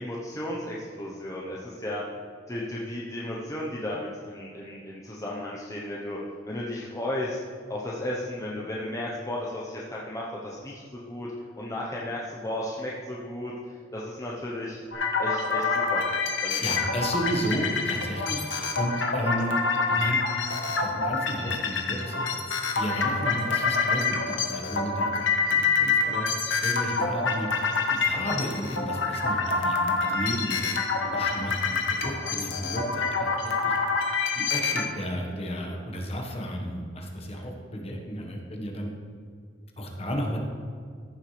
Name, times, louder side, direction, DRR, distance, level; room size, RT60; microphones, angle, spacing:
voice 1, 0.0-2.0 2.5-6.2 6.5-7.4 7.7-11.3 11.6-14.8 15.2-16.0 16.4-16.6, left 1 dB, 15° left, -4 dB, 0.9 m, -34 dB
sound 1, 14.9-34.8, left 4 dB, 85° left, 1.2 m, -27 dB
voice 2, 16.6-19.6 19.9-20.2 20.8-22.3 22.7-25.2 25.5-26.3 26.6-27.5 27.9-30.5 31.1-33.7 34.3-38.9 39.8-40.4, equal, 35° left, 0 dB, 1.3 m, -33 dB
14.5 x 7.1 x 3.3 m, 2.2 s
head